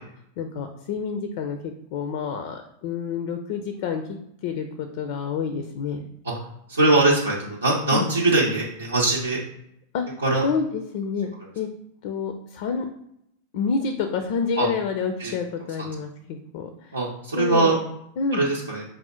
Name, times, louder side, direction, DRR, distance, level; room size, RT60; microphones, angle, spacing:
voice 1, 0.4-4.2 4.4-6.1 7.9-8.1 9.9-10.0 10.4-11.7 12.0-12.9 13.5-16.9 17.3-17.8 18.2-18.4, left 5 dB, 60° left, 6 dB, 0.4 m, -28 dB
voice 2, 6.7-9.4 10.2-10.4 14.6-14.7 15.2-15.3 15.8-15.9 16.9-17.7 18.3-18.8, right 2 dB, 90° right, -5 dB, 0.7 m, -21 dB
4.9 x 2.0 x 4.3 m, 0.75 s
hypercardioid pair, 95°, 0 cm